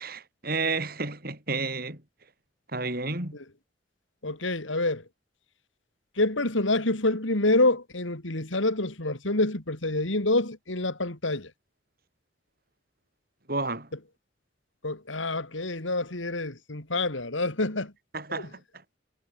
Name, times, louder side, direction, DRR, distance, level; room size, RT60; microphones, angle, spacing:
voice 1, 0.0-2.0 2.7-3.4 13.5-13.9 18.1-18.6, right 3 dB, 50° right, 5.7 m, -31 dB
voice 2, 4.2-5.0 6.2-11.5 14.8-17.9 18.3-18.4, left 2 dB, 85° left, 3.5 m, -27 dB
head